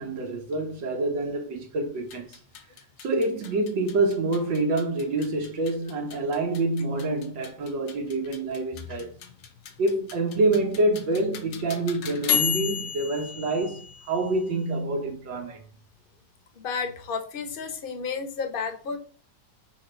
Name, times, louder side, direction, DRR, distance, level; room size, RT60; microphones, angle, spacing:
voice 1, 0.0-2.4 3.0-9.1 9.8-15.6, right 2 dB, 85° right, 2.0 m, -27 dB
sound 1, 2.0-14.7, left 9 dB, 80° left, 1.5 m, -34 dB
voice 2, 16.6-19.0, left 5 dB, 40° left, 0.9 m, -32 dB
6.4 x 3.4 x 5.1 m
omnidirectional pair, 2.0 m